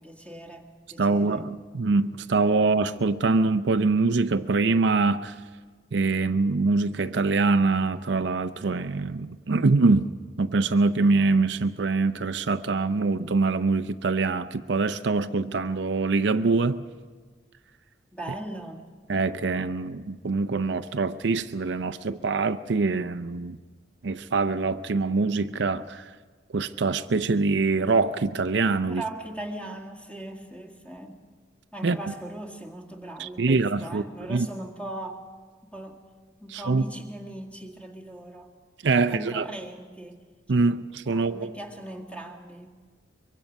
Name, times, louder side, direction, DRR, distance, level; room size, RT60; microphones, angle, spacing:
voice 1, 0.0-1.4 18.1-18.9 28.9-31.2 31.7-35.3 35.6-36.0 36.4-38.5 39.0-40.2 41.1-42.8, right 1 dB, 5° left, 2.1 m, -39 dB
voice 2, 1.0-5.4 5.9-10.1 10.4-16.8 19.1-23.6 24.0-26.1 26.5-29.0 31.8-32.0 33.2-34.0 34.3-34.5 36.5-36.8 38.8-39.4 40.5-41.5, right 3 dB, 65° right, 0.6 m, -24 dB
23.5 x 23.5 x 5.3 m
head